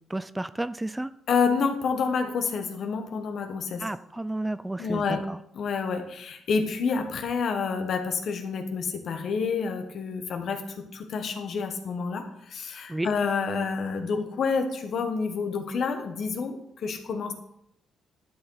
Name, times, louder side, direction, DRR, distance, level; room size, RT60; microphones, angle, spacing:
voice 1, 0.1-1.1 3.8-5.4 12.9-13.1, right 1 dB, 10° right, 14 dB, 0.3 m, -31 dB
voice 2, 1.3-3.9 4.8-5.2 5.5-17.3, left 5 dB, 60° left, 6 dB, 1.4 m, -28 dB
11.5 x 7.0 x 4.0 m, 0.75 s
cardioid pair, 90°, 0 cm